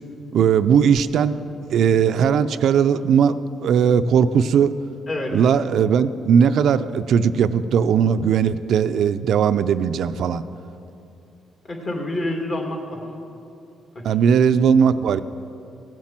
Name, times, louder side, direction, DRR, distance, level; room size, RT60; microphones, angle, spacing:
voice 1, 0.3-1.4 1.7-3.3 3.6-4.7 5.3-10.4 14.0-15.2, right 7 dB, 70° right, 12 dB, 0.4 m, -18 dB
voice 2, 5.1-5.4 11.6-13.0 13.9-14.4, left 1 dB, 40° left, 1 dB, 2.6 m, -28 dB
15.0 x 7.5 x 7.4 m, 2.7 s
cardioid pair, 90°, 0 cm